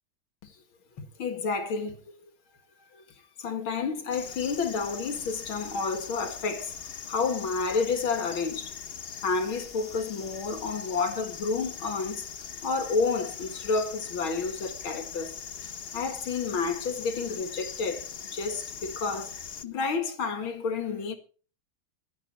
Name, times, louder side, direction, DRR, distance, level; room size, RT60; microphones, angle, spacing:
voice 1, 1.0-2.0 2.9-3.0 3.4-6.7 7.1-8.7 9.2-12.3 12.6-15.3 15.9-18.1 18.3-19.3 19.6-21.2, left 4 dB, 75° left, 2.7 m, -30 dB
sound 1, 4.1-19.7, left 6 dB, 55° left, 0.6 m, -41 dB
16.0 x 12.5 x 4.3 m
omnidirectional pair, 2.3 m